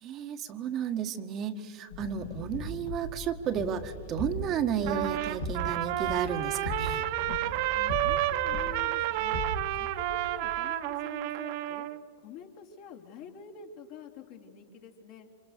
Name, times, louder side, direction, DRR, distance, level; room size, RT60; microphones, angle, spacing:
voice 1, 0.0-7.0, right 8 dB, 35° right, 6 dB, 1.7 m, -33 dB
sound 1, 1.9-10.6, left 1 dB, 75° left, 5.6 m, -38 dB
Trumpet, 4.9-12.0, right 15 dB, 55° right, 1.1 m, -30 dB
voice 2, 7.7-9.4 9.7-11.9 12.2-15.3, left 7 dB, 50° left, 1 dB, 3.7 m, -47 dB
28.5 x 26.0 x 6.8 m, 2.2 s
hypercardioid pair, 100°, 0 cm